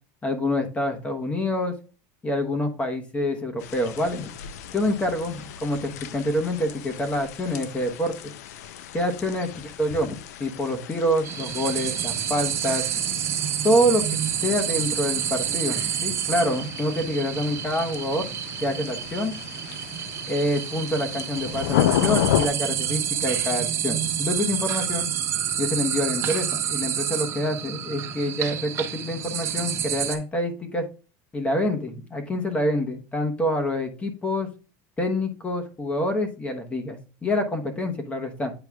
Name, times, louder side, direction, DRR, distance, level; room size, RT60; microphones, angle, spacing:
voice 1, 0.2-1.7 2.2-4.3 4.7-8.1 8.9-12.8 13.6-18.3 18.6-19.3 20.3-25.1 25.6-30.9 31.3-34.5 35.0-38.5, left 1 dB, 15° left, 5 dB, 1.0 m, -26 dB
sound 1, 3.6-22.5, left 11 dB, 90° left, 0.5 m, -33 dB
sound 2, 11.2-30.2, right 9 dB, 35° right, 1.1 m, -29 dB
8.9 x 4.8 x 2.3 m, 0.35 s
supercardioid pair, 150°, 8 cm